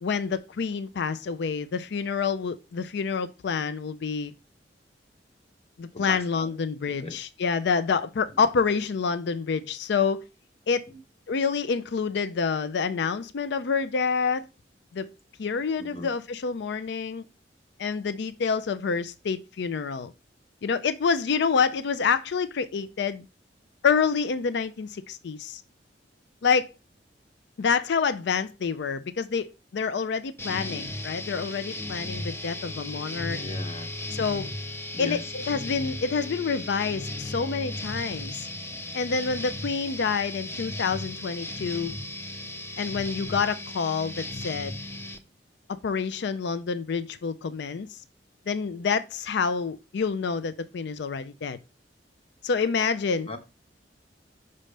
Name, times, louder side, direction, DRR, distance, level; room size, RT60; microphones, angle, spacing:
voice 1, 0.0-4.3 5.8-10.2 10.7-10.9 11.3-14.5 14.9-15.1 15.4-17.3 17.8-20.1 20.6-23.2 23.8-25.6 26.4-26.7 27.6-33.4 34.1-34.5 35.0-38.5 38.9-41.9 42.8-44.7 45.7-48.0 48.5-51.6 52.4-53.3, left 5 dB, 65° left, 0.4 m, -27 dB
voice 2, 5.9-6.5 6.8-7.2 10.9-11.0 15.8-16.1 33.3-33.9 34.9-35.3 38.7-38.8 53.2-53.4, left 2 dB, 35° left, 1.0 m, -38 dB
sound 1, 30.4-45.2, left 1 dB, 15° left, 0.6 m, -36 dB
6.3 x 5.5 x 3.2 m
head